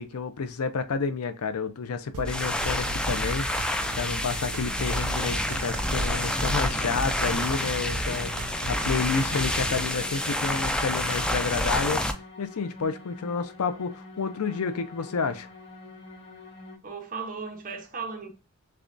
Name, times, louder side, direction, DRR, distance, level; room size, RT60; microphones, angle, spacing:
voice 1, 0.0-15.5, left 5 dB, 80° left, 0.5 m, -30 dB
sound 1, 2.1-9.8, right 2 dB, 75° right, 0.6 m, -37 dB
sound 2, 2.2-12.1, left 1 dB, 5° left, 0.4 m, -28 dB
sound 3, 4.3-16.8, left 3 dB, 50° left, 1.1 m, -46 dB
voice 2, 16.8-18.3, right 5 dB, 40° right, 0.9 m, -37 dB
6.7 x 2.3 x 2.6 m
head